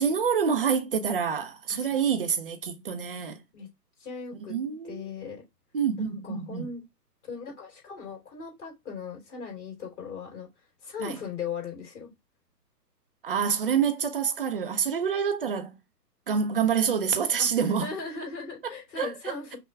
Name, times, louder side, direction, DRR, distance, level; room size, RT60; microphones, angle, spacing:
voice 1, 0.0-3.4 4.5-5.0 5.7-6.7 11.0-11.2 13.2-15.8 16.3-17.9 19.0-19.6, right 7 dB, 35° right, 0.5 m, -27 dB
voice 2, 4.0-4.6 4.8-5.4 6.0-6.8 7.2-10.5 10.8-12.1 17.4-17.5 17.8-19.6, left 5 dB, 45° left, 3.0 m, -38 dB
5.7 x 2.3 x 3.2 m
figure-of-eight pair, 135°, 50 cm